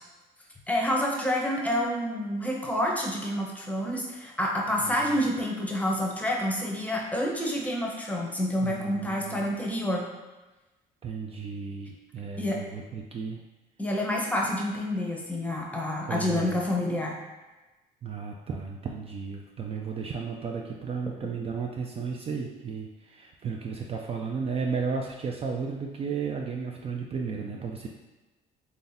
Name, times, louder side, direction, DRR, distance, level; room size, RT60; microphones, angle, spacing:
voice 1, 0.7-10.1 12.4-12.6 13.8-17.1, left 1 dB, 10° left, -1 dB, 0.7 m, -28 dB
voice 2, 8.6-9.5 11.0-13.4 16.1-16.6 18.0-27.9, right 5 dB, 35° right, 0 dB, 0.4 m, -34 dB
3.4 x 2.7 x 3.9 m, 1.1 s
cardioid pair, 110°, 17 cm